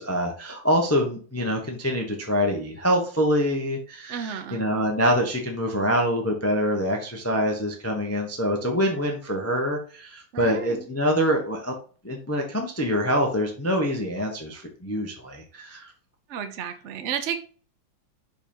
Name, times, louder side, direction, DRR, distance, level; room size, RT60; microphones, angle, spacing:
voice 1, 0.0-11.7 12.0-15.8, equal, 10° left, 2 dB, 0.7 m, -25 dB
voice 2, 4.1-4.7 10.3-10.9 16.3-17.4, right 8 dB, 55° right, 8 dB, 0.8 m, -32 dB
5.5 x 5.3 x 5.4 m, 0.41 s
omnidirectional pair, 2.3 m